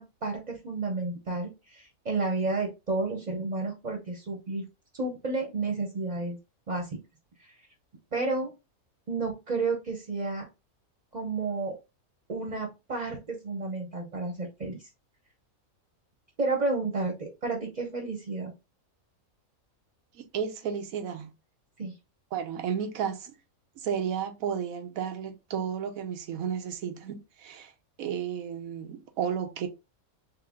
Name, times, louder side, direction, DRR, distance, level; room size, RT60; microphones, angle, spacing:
voice 1, 0.0-4.6 4.9-6.4 6.7-7.0 7.4-7.5 8.1-8.5 9.1-10.4 11.1-11.7 12.3-14.8 16.4-18.5 21.8-21.9, right 3 dB, 35° right, 1.0 m, -31 dB
voice 2, 20.1-21.3 22.3-23.3 23.8-27.7 28.0-29.7, right 8 dB, 75° right, 1.2 m, -33 dB
3.4 x 3.3 x 3.6 m
omnidirectional pair, 1.5 m